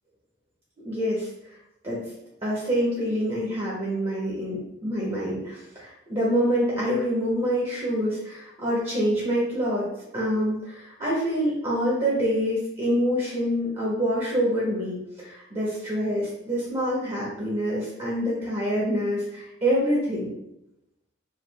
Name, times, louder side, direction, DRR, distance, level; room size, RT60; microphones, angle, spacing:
voice 1, 0.8-1.6 1.8-2.0 2.4-9.9 10.1-20.3, equal, 30° right, -6 dB, 0.9 m, -26 dB
4.7 x 2.4 x 3.3 m, 0.86 s
head